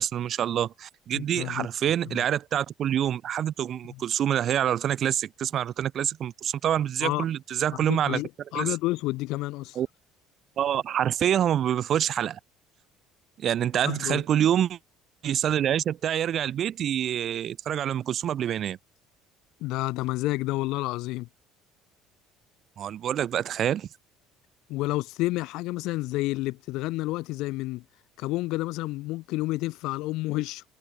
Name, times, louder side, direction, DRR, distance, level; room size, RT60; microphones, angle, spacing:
voice 1, 0.0-8.2 8.5-8.7 9.7-9.9 10.6-12.4 13.4-14.8 15.2-18.8 22.8-23.9, right 10 dB, 50° right, 1.3 m, -26 dB
voice 2, 1.1-1.7 2.1-2.2 3.9-4.0 7.0-7.2 7.9-9.8 13.8-14.2 19.6-21.3 24.7-27.8 28.2-30.6, left 19 dB, 75° left, 3.1 m, -30 dB
cardioid pair, 105°, 0 cm